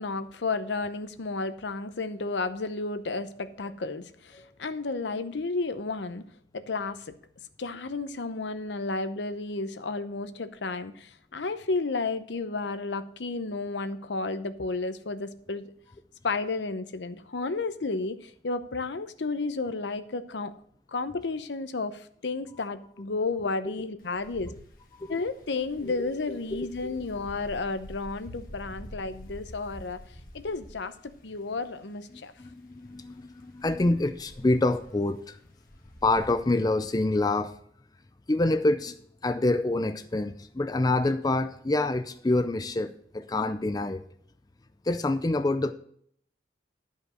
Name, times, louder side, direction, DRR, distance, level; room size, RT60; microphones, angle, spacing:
voice 1, 0.0-6.2 6.5-7.1 7.6-15.7 16.2-20.5 20.9-24.5 25.1-30.0 30.3-32.3, left 3 dB, 75° left, 11 dB, 0.8 m, -32 dB
Wind, 24.0-37.1, equal, 50° left, 1.3 m, -48 dB
voice 2, 26.5-27.0 32.1-35.4 36.0-37.5 38.3-44.0 44.8-45.7, left 2 dB, 20° left, 9 dB, 0.4 m, -27 dB
12.0 x 5.3 x 6.3 m, 0.63 s
head